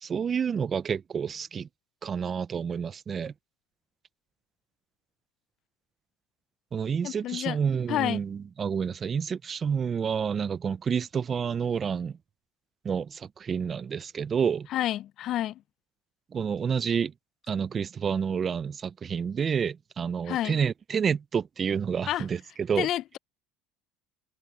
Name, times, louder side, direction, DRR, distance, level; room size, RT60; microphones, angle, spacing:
voice 1, 0.0-1.7 2.0-3.3 6.7-12.2 12.8-14.7 16.3-17.1 17.5-22.9, right 7 dB, 35° right, 0.5 m, -29 dB
voice 2, 7.0-7.6 7.9-8.2 14.7-15.6 20.3-20.6 22.1-22.3 22.8-23.2, left 13 dB, 55° left, 0.6 m, -29 dB
supercardioid pair, 105°, 0 cm